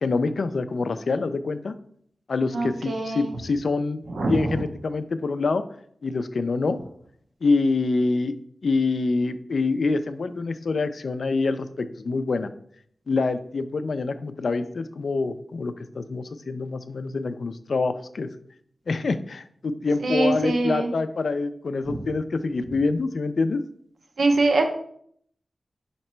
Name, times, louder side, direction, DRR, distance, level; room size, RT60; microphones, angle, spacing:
voice 1, 0.0-1.7 2.3-4.0 4.3-5.6 6.0-6.8 7.4-8.3 8.6-12.5 13.1-18.3 18.9-23.6, left 3 dB, 75° left, 11 dB, 0.3 m, -26 dB
voice 2, 2.5-3.3 4.1-4.5 20.0-20.9 21.9-22.0 24.2-24.6, right 2 dB, 85° right, 3 dB, 0.7 m, -23 dB
4.3 x 2.9 x 4.3 m, 0.65 s
wide cardioid pair, 100°, 0 cm